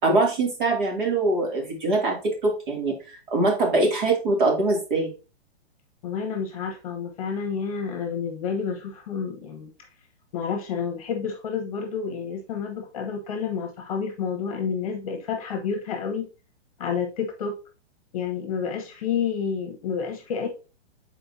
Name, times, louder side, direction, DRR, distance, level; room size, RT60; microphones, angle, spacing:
voice 1, 0.0-5.1, right 2 dB, 45° right, 0 dB, 2.7 m, -23 dB
voice 2, 6.0-9.7 10.3-16.3 16.8-17.6 18.1-20.5, left 6 dB, 30° left, 5 dB, 1.1 m, -29 dB
7.6 x 4.5 x 2.8 m, 0.32 s
hypercardioid pair, 175°, 33 cm